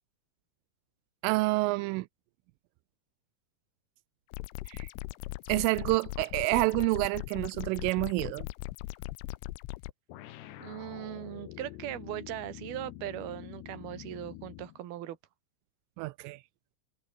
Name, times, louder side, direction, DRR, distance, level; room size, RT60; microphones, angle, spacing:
voice 1, 1.2-2.1 4.7-4.9 5.5-8.5 16.0-16.4, right 22 dB, 85° right, 3.2 m, -28 dB
sound 1, 4.3-9.9, left 21 dB, 85° left, 3.2 m, -39 dB
sound 2, 10.1-14.8, left 14 dB, 70° left, 3.1 m, -46 dB
voice 2, 10.6-15.2, right 13 dB, 60° right, 3.3 m, -39 dB
omnidirectional pair, 5.6 m